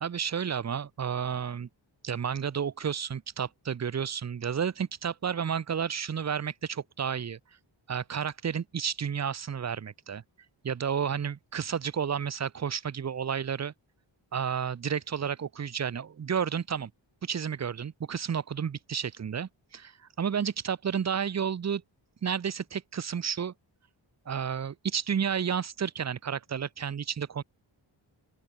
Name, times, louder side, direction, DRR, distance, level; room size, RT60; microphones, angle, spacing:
voice 1, 0.0-1.7 2.0-7.4 7.9-10.2 10.6-13.7 14.3-16.9 17.2-19.9 20.2-21.8 22.2-23.5 24.3-27.4, right 7 dB, 35° right, 0.6 m, -31 dB
open air
wide cardioid pair, 140°, 47 cm